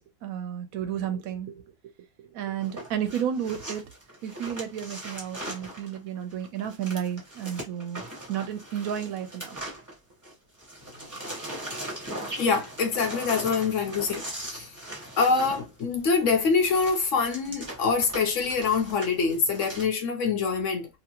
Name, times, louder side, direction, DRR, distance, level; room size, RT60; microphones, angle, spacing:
voice 1, 0.0-1.6 2.2-3.9 4.2-8.0 8.3-9.6, right 9 dB, 70° right, 1.0 m, -32 dB
sound 1, 2.6-10.3 10.6-19.8, right 1 dB, 15° right, 0.8 m, -39 dB
voice 2, 12.4-14.7 15.2-20.9, left 5 dB, 65° left, 0.8 m, -25 dB
2.8 x 2.6 x 2.9 m
omnidirectional pair, 1.7 m